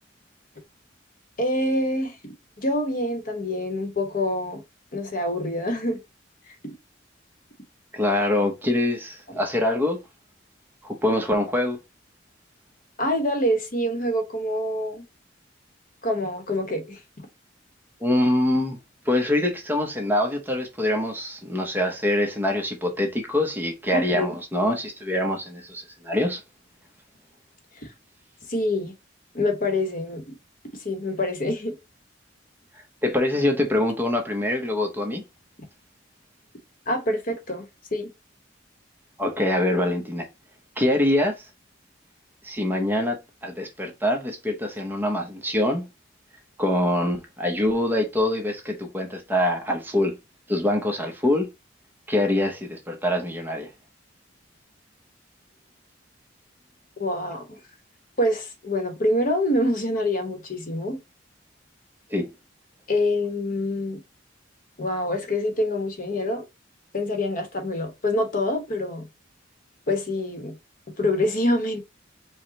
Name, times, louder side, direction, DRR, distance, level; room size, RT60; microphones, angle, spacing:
voice 1, 1.4-2.2 2.6-4.6 4.9-6.0 13.0-15.0 16.0-17.0 23.9-24.3 27.8-27.9 28.5-28.9 29.3-30.3 30.8-31.8 36.9-37.7 37.9-38.1 57.0-57.6 58.2-61.0 62.9-64.0 64.8-66.4 66.9-69.0 69.9-70.5 71.0-71.8, left 1 dB, 45° left, 1.1 m, -26 dB
voice 2, 7.9-10.0 10.8-11.8 18.0-18.8 19.1-26.4 33.0-35.2 39.2-40.3 40.8-41.4 42.4-45.8 46.6-50.1 50.5-51.5 52.1-53.7 62.1-62.3, left 1 dB, 10° right, 0.9 m, -24 dB
4.8 x 2.3 x 4.0 m
head